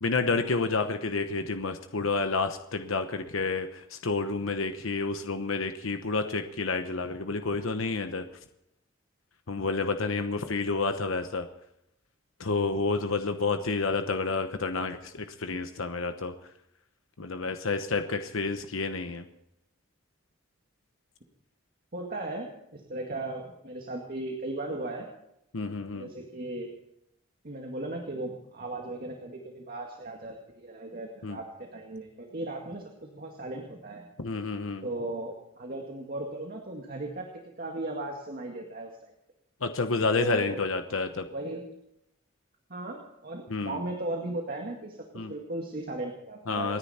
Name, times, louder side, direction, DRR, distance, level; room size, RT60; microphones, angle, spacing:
voice 1, 0.0-8.2 9.5-11.5 12.4-16.3 17.2-19.2 25.5-26.1 31.2-31.4 34.2-34.9 39.6-41.3 43.5-43.8 45.1-45.3 46.5-46.8, left 3 dB, 90° left, 8 dB, 1.0 m, -29 dB
voice 2, 21.9-25.1 25.9-26.7 27.4-34.1 34.8-39.1 40.1-40.6 41.2-41.6 42.7-46.8, right 2 dB, 45° right, 1 dB, 2.0 m, -37 dB
28.5 x 10.0 x 4.3 m, 0.81 s
head